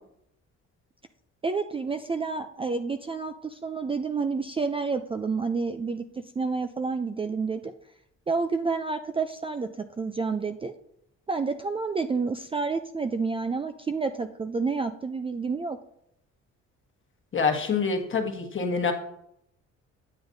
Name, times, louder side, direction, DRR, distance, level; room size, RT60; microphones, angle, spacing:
voice 1, 1.4-7.7 8.3-10.7 11.3-15.8, right 4 dB, 20° right, 8 dB, 0.3 m, -29 dB
voice 2, 17.3-18.9, left 5 dB, 40° left, 3 dB, 1.3 m, -26 dB
8.9 x 7.7 x 2.6 m, 0.77 s
cardioid pair, 90°, 30 cm